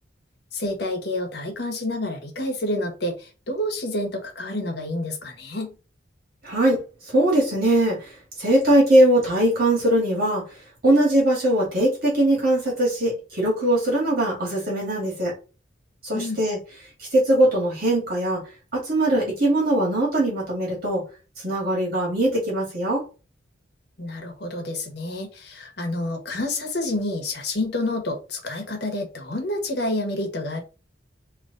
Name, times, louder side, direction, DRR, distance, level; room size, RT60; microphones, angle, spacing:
voice 1, 0.5-5.7 16.1-16.4 24.0-30.6, left 1 dB, 60° left, 3 dB, 1.3 m, -28 dB
voice 2, 6.4-10.4 10.8-15.3 16.0-16.6 17.0-18.4 18.7-21.0 21.4-23.0, right 1 dB, 50° right, -3 dB, 2.2 m, -21 dB
3.8 x 3.1 x 4.0 m, 0.33 s
head